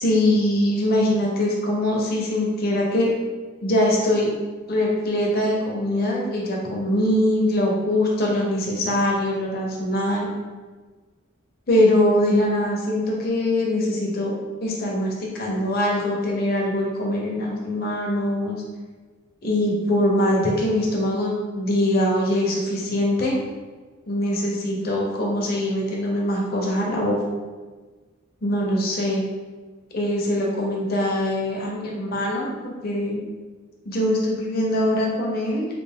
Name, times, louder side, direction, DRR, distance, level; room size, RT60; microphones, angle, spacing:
voice 1, 0.0-3.1 3.6-4.3 4.7-10.3 11.7-14.3 14.6-18.6 19.4-23.4 24.1-27.2 28.4-29.2 29.9-33.2 33.9-35.6, left 1 dB, 50° left, -2 dB, 0.8 m, -22 dB
3.3 x 2.5 x 3.5 m, 1.4 s
head